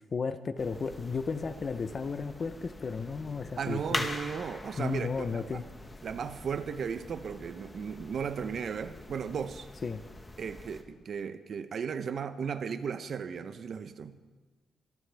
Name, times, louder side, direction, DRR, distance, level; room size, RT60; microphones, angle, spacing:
voice 1, 0.1-4.1 4.8-5.6 9.8-10.0, left 5 dB, 35° left, 0.7 m, -34 dB
sound 1, 0.6-10.8, left 2 dB, 15° left, 1.0 m, -43 dB
voice 2, 3.6-5.6 6.0-9.7 10.4-14.2, right 6 dB, 50° right, 0.7 m, -35 dB
23.5 x 13.0 x 3.4 m
cardioid pair, 150°, 0 cm